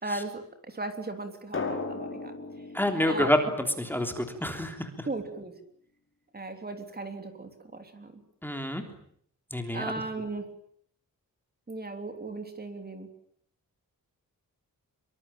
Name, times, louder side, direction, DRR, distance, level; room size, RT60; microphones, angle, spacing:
voice 1, 0.0-0.4 0.7-2.4 3.0-3.3 5.1-5.6 6.3-8.1 9.7-10.5 11.7-13.1, right 2 dB, 25° right, 7 dB, 3.4 m, -37 dB
Drum, 1.5-4.2, left 3 dB, 35° left, 5.3 m, -37 dB
voice 2, 2.7-5.1 8.4-8.8 9.5-10.0, left 1 dB, 5° left, 5 dB, 3.4 m, -28 dB
26.0 x 24.0 x 8.9 m, 0.66 s
wide cardioid pair, 180°, 36 cm